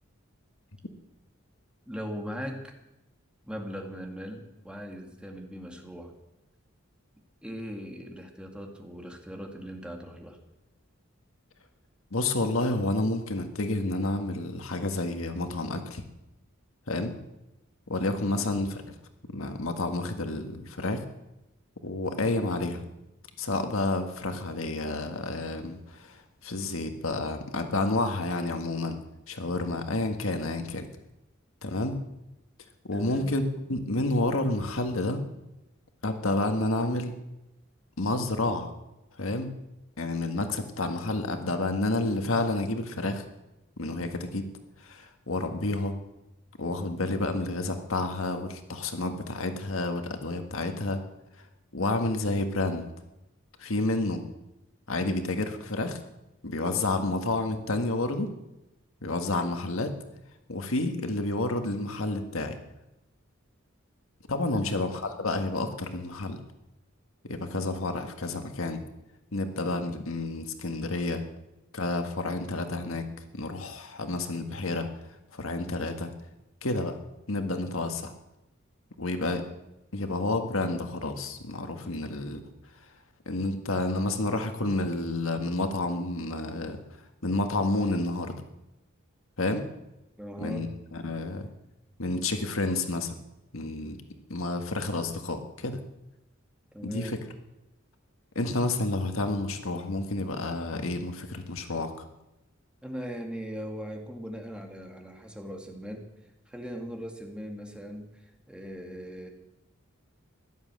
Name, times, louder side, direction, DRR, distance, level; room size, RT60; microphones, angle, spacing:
voice 1, 1.9-2.7 3.5-6.1 7.4-10.4 18.3-18.5 32.9-33.3 64.5-64.7 90.2-90.7 96.7-97.1 102.8-106.1 106.5-109.3, equal, 5° right, 2 dB, 2.2 m, -39 dB
voice 2, 12.1-16.0 16.9-17.1 17.9-18.8 19.3-21.0 21.8-22.8 23.4-29.0 29.3-30.9 31.6-32.0 32.8-33.4 33.7-35.2 36.0-37.2 38.0-38.7 39.2-39.5 40.0-43.2 43.8-44.4 44.8-46.0 46.6-51.0 51.7-52.9 53.6-54.2 54.9-56.0 56.4-58.3 59.0-59.9 60.5-62.6 64.3-66.4 67.3-68.8 69.3-71.2 71.7-73.0 73.3-74.9 75.3-76.1 76.6-77.0 77.3-78.1 79.0-79.4 79.9-82.4 83.2-86.8 87.2-88.3 89.4-89.6 90.4-90.7 90.9-91.5 92.0-93.1 93.5-94.0 94.3-95.8 96.8-97.2 98.3-102.0, left 2 dB, 90° left, 6 dB, 1.7 m, -30 dB
15.5 x 11.5 x 7.7 m, 0.92 s
head